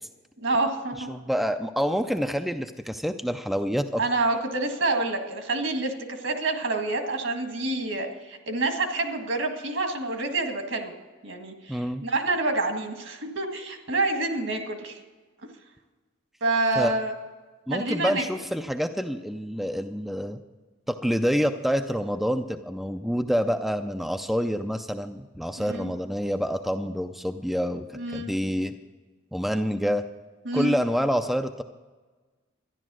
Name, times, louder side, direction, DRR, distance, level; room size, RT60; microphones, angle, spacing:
voice 1, 0.4-1.1 4.0-10.9 11.2-15.0 16.4-17.1 17.7-18.2 25.6-25.9 27.9-28.3 30.5-30.8, right 2 dB, 70° right, 5 dB, 1.8 m, -27 dB
voice 2, 1.1-4.0 11.7-12.0 16.7-16.9 17.7-20.4 20.9-28.7 29.3-30.0 30.5-31.6, equal, ahead, 7 dB, 0.4 m, -27 dB
13.0 x 11.0 x 6.2 m, 1.3 s
head